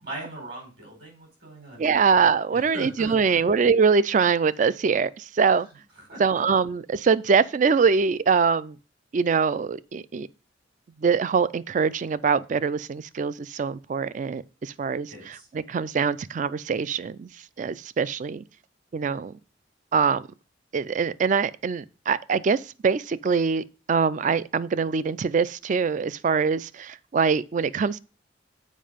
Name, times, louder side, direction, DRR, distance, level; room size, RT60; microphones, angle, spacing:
voice 1, 0.0-2.0 2.5-3.4 6.1-6.2 15.1-15.5, right 1 dB, 60° right, 4.9 m, -39 dB
voice 2, 1.8-5.7 6.2-8.8 9.1-10.3 11.0-17.3 17.6-18.4 18.9-19.3 19.9-20.3 20.7-28.0, right 5 dB, 45° right, 0.3 m, -23 dB
7.5 x 5.0 x 5.0 m
head